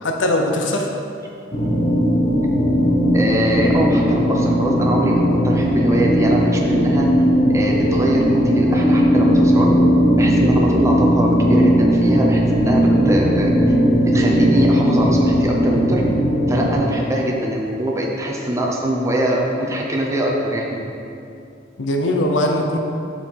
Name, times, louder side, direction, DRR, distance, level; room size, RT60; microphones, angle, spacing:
voice 1, 0.0-0.9 21.8-22.8, left 1 dB, 80° left, 2 dB, 0.8 m, -20 dB
sound 1, 1.5-16.7, equal, 45° left, 1.1 m, -17 dB
voice 2, 3.1-7.1 7.5-9.8 10.2-13.5 14.0-16.0 16.5-20.8, right 1 dB, 15° right, -2 dB, 0.7 m, -22 dB
7.1 x 5.6 x 4.6 m, 2.6 s
head